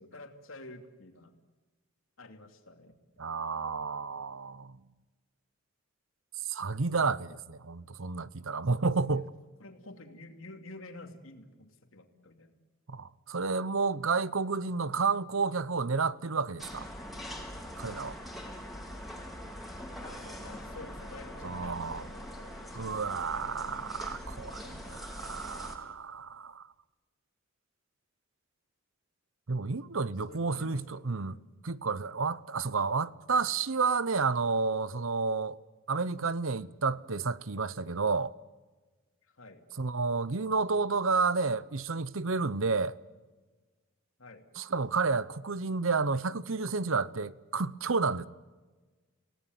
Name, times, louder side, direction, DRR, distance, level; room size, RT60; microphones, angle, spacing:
voice 1, 0.0-1.3 2.2-2.9 8.7-8.8 9.1-9.2 9.6-12.5 20.0-23.7 30.3-31.5 39.2-39.6 44.2-44.4, left 2 dB, 80° left, 2.8 m, -50 dB
voice 2, 3.2-4.8 6.4-9.3 12.9-16.9 17.8-18.2 21.4-22.0 22.7-26.6 29.5-31.4 31.6-35.6 35.9-38.3 39.8-43.0 44.6-48.3, right 4 dB, 75° right, 0.9 m, -31 dB
sound 1, 16.6-25.8, equal, ahead, 4.2 m, -43 dB
29.0 x 18.0 x 9.4 m
head